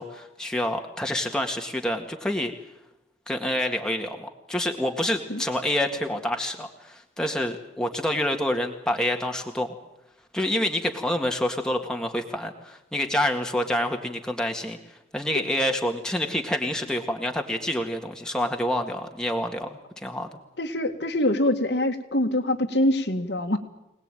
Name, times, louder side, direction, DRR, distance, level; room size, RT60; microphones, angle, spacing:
voice 1, 0.0-2.5 3.3-9.7 10.3-14.8 15.1-19.7 20.0-20.3, left 1 dB, 5° left, 3 dB, 1.9 m, -27 dB
voice 2, 20.6-23.6, left 1 dB, 65° left, 4 dB, 2.2 m, -24 dB
25.0 x 19.5 x 9.2 m, 0.88 s
head